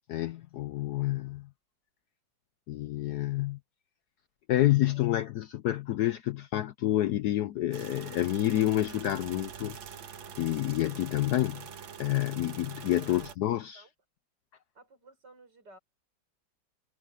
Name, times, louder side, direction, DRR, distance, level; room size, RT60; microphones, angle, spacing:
voice 1, 0.1-1.5 2.7-3.6 4.5-9.8 10.4-11.6 12.0-13.8, left 14 dB, 75° left, 0.9 m, -28 dB
sound 1, 7.7-13.4, right 7 dB, 80° right, 2.0 m, -44 dB
voice 2, 12.9-13.9 14.7-15.8, right 2 dB, 60° right, 5.5 m, -56 dB
omnidirectional pair, 2.1 m